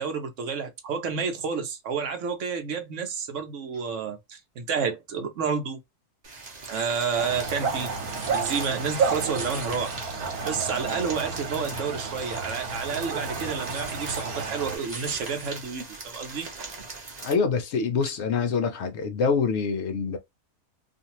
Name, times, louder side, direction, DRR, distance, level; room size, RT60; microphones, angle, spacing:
voice 1, 0.0-5.8 6.7-7.9 8.3-16.9, right 6 dB, 65° right, 0.9 m, -30 dB
sound 1, 6.2-17.3, right 3 dB, 35° right, 0.7 m, -39 dB
sound 2, 7.2-14.8, right 5 dB, 80° right, 1.3 m, -31 dB
voice 2, 17.2-20.2, left 5 dB, 65° left, 0.7 m, -25 dB
2.5 x 2.5 x 2.8 m
omnidirectional pair, 1.6 m